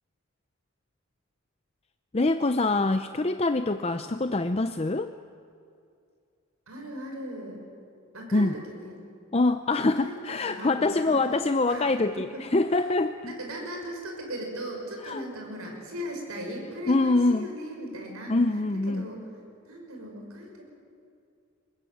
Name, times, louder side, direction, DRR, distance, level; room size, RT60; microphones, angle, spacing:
voice 1, 2.1-5.1 8.3-8.6 9.3-13.3 15.0-15.2 16.9-17.5 18.3-19.1, left 2 dB, 30° left, 9 dB, 0.6 m, -25 dB
voice 2, 6.7-7.6 8.1-9.0 9.8-11.2 11.7-12.4 12.7-12.9 13.2-18.4 18.9-19.2 19.7-20.7, equal, 85° right, 1 dB, 6.0 m, -38 dB
24.5 x 20.5 x 9.2 m, 2.4 s
head